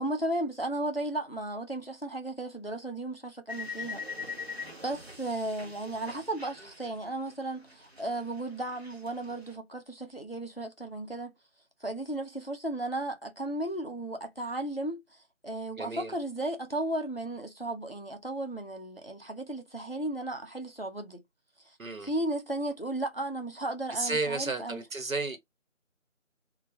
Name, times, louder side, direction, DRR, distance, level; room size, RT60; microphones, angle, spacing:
voice 1, 0.0-4.0 4.8-11.3 11.8-15.0 15.4-21.2 21.7-21.8 22.0-24.8, right 1 dB, 50° left, 0.4 m, -34 dB
sound 1, 3.5-7.4 7.7-9.5, left 4 dB, 50° right, 0.7 m, -43 dB
voice 2, 15.8-16.1 21.8-22.1 23.9-25.4, right 3 dB, 80° right, 0.9 m, -32 dB
2.2 x 2.1 x 2.7 m
figure-of-eight pair, 175°, 40 cm